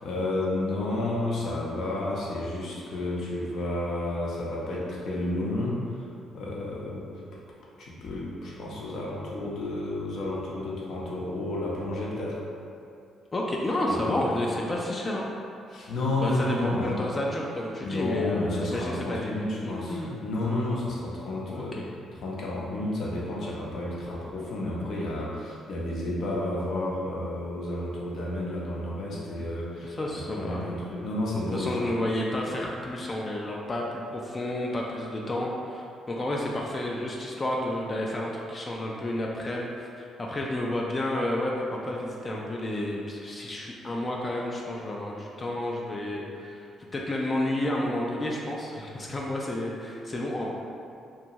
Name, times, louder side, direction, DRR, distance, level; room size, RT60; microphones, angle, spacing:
voice 1, 0.0-5.8 6.3-7.1 7.8-12.4 13.9-14.3 15.7-17.0 17.8-21.8 22.1-31.9, left 1 dB, 65° left, -5 dB, 0.6 m, -31 dB
voice 2, 13.3-15.3 16.2-20.2 21.4-21.8 29.8-30.6 31.5-46.7 46.9-50.5, left 1 dB, 30° left, -2 dB, 0.3 m, -31 dB
2.6 x 2.2 x 2.9 m, 2.6 s
cardioid pair, 90°, 0 cm